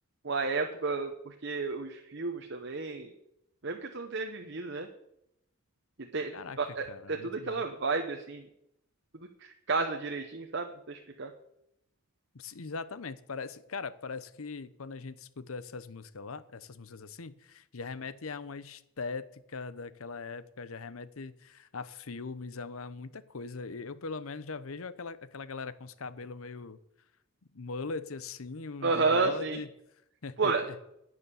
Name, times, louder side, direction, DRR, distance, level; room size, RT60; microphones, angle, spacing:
voice 1, 0.2-3.1 3.6-4.9 6.1-6.3 6.6-8.5 9.1-11.3 28.8-29.6 30.4-30.6, right 4 dB, 55° right, 4 dB, 0.9 m, -31 dB
voice 2, 6.9-7.6 12.3-26.8 27.5-29.7 30.2-30.8, left 4 dB, 80° left, 15 dB, 0.8 m, -40 dB
9.7 x 9.5 x 6.9 m, 0.80 s
head